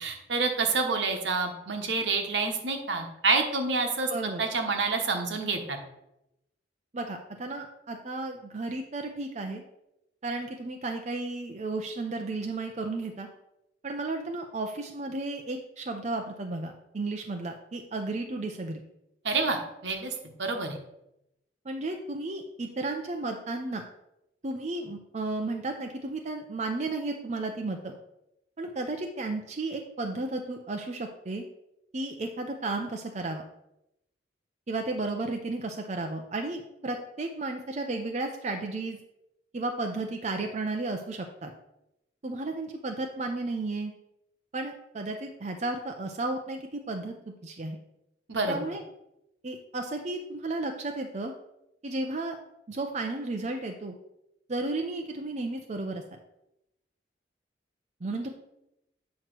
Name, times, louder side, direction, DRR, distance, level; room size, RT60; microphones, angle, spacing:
voice 1, 0.0-4.1 4.4-5.8 19.2-20.8 48.3-48.6, right 4 dB, 80° right, 4 dB, 1.1 m, -28 dB
voice 2, 4.1-4.4 6.9-9.6 10.2-13.3 13.8-18.8 21.6-23.8 24.4-28.0 28.6-31.4 31.9-33.4 34.7-39.0 39.5-41.5 42.2-43.9 44.5-47.1 47.4-47.8 48.5-48.8 49.4-51.3 51.8-52.4 52.7-53.9 54.5-56.0 58.0-58.3, right 2 dB, 40° right, 3 dB, 0.5 m, -33 dB
8.4 x 3.0 x 6.0 m, 0.86 s
head